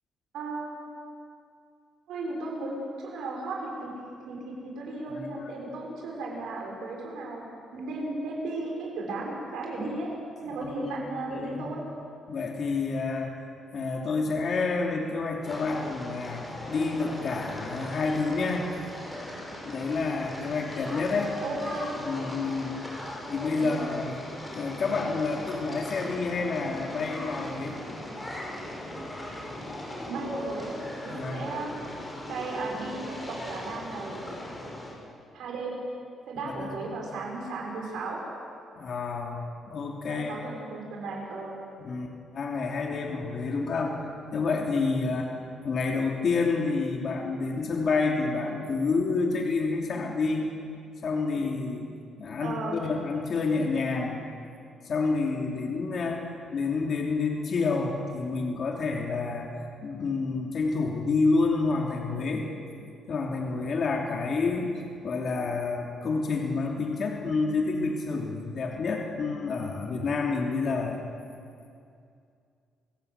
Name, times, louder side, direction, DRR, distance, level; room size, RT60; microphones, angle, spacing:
voice 1, 0.3-0.8 2.1-3.9 4.3-7.4 7.7-10.1 10.4-11.8 21.4-21.9 23.5-23.8 30.1-34.3 35.3-35.7 36.2-38.2 40.1-41.6 52.4-52.8, right 2 dB, 80° right, -1 dB, 6.7 m, -35 dB
voice 2, 5.1-5.5 10.4-10.9 11.3-11.7 12.3-13.3 13.7-18.7 19.6-21.3 22.0-22.8 23.3-24.2 24.5-27.8 31.1-31.5 36.4-36.9 38.7-40.4 41.8-44.0 44.3-45.3 45.6-50.5 51.0-51.9 52.2-54.2 54.8-59.5 59.8-62.5 63.1-71.0, left 4 dB, 45° left, 0 dB, 3.1 m, -29 dB
sound 1, 15.4-34.9, left 1 dB, 10° left, 6.7 m, -39 dB
29.0 x 17.0 x 8.4 m, 2.4 s
cardioid pair, 140°, 0 cm